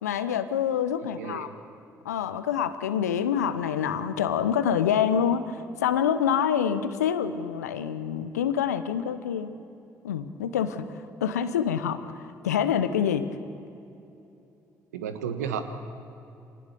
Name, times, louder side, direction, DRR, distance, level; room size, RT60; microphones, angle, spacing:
voice 1, 0.0-1.5 2.0-9.5 10.0-13.3, left 8 dB, 85° left, 12 dB, 0.9 m, -26 dB
voice 2, 1.0-1.5 14.9-15.6, right 8 dB, 85° right, 9 dB, 1.3 m, -33 dB
24.5 x 19.0 x 6.9 m, 2.8 s
hypercardioid pair, 45°, 9 cm